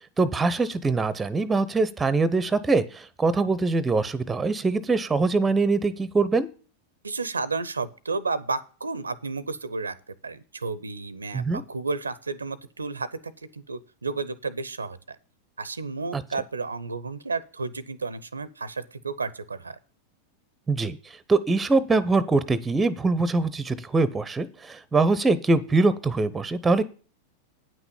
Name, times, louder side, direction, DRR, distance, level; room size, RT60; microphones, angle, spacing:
voice 1, 0.2-6.5 11.3-11.6 16.1-16.2 20.7-21.0 21.3-26.8, right 3 dB, 15° right, 18 dB, 0.8 m, -23 dB
voice 2, 7.0-9.9 10.2-13.2 13.5-15.2 15.6-19.8, right 4 dB, 75° right, 19 dB, 0.7 m, -32 dB
9.4 x 6.1 x 7.0 m, 0.37 s
figure-of-eight pair, 90°, 0 cm